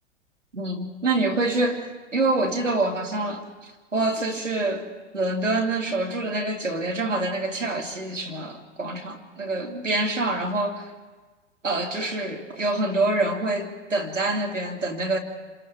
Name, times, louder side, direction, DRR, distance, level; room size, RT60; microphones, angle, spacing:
voice 1, 0.5-4.9 5.1-10.9 11.6-15.2, right 2 dB, 80° right, 2 dB, 2.7 m, -26 dB
28.5 x 27.0 x 3.5 m, 1.3 s
figure-of-eight pair, 105°, 37 cm